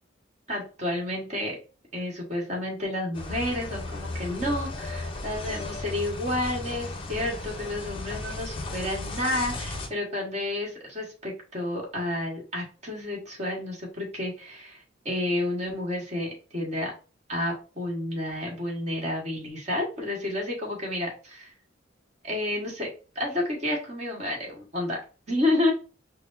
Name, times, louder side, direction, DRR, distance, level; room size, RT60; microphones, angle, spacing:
voice 1, 0.5-1.6 1.9-16.9 17.3-21.5 22.2-22.9 23.1-25.0 25.3-25.7, left 1 dB, 35° right, -2 dB, 1.4 m, -30 dB
sound 1, 3.1-9.9, left 2 dB, 30° left, 0.6 m, -35 dB
5.9 x 2.2 x 2.5 m, 0.36 s
head